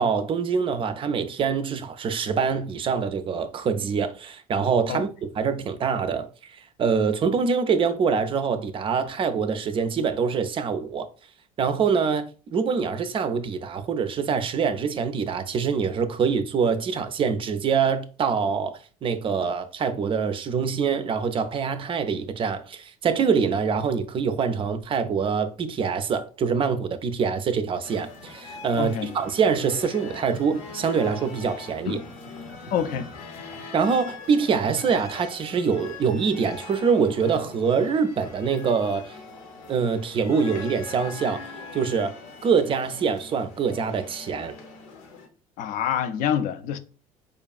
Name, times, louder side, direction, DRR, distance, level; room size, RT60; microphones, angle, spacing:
voice 1, 0.0-5.1 5.3-11.1 11.6-32.0 33.7-39.2 39.7-41.4 41.7-44.6, right 6 dB, 30° right, 0.4 m, -25 dB
sound 1, 27.8-45.3, left 4 dB, 65° left, 0.9 m, -41 dB
voice 2, 28.8-29.1 31.9-32.0 32.7-33.1 45.6-46.8, left 9 dB, 45° left, 0.4 m, -26 dB
4.9 x 2.3 x 2.4 m
figure-of-eight pair, 60°, 18 cm